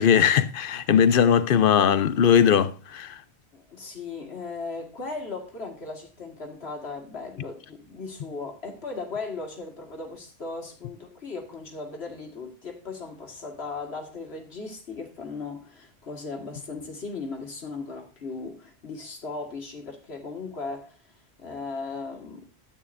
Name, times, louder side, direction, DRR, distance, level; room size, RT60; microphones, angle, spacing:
voice 1, 0.0-3.1, left 8 dB, 60° left, 0.8 m, -19 dB
voice 2, 3.5-21.0 21.4-22.4, left 3 dB, 80° left, 2.0 m, -37 dB
13.0 x 8.7 x 2.6 m
omnidirectional pair, 1.1 m